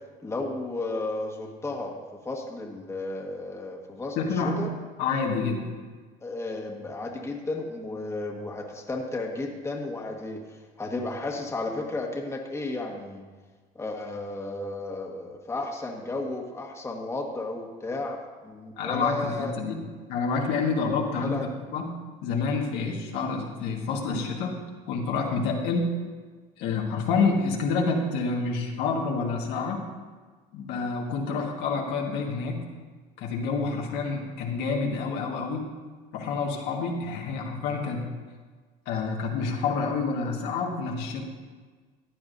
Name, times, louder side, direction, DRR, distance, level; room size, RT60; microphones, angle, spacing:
voice 1, 0.2-2.0 2.2-4.7 6.2-13.2 13.7-18.2 18.4-19.5 21.1-21.5, left 2 dB, 15° left, 0 dB, 1.5 m, -33 dB
voice 2, 4.1-4.7 5.0-5.7 18.8-19.8 20.1-21.4 21.7-21.9 22.2-24.6 24.9-25.9 26.6-29.9 30.5-32.6 33.2-35.7 36.1-38.1 38.8-41.2, left 4 dB, 75° left, 0 dB, 1.6 m, -28 dB
15.0 x 9.4 x 2.6 m, 1.4 s
cardioid pair, 105°, 17 cm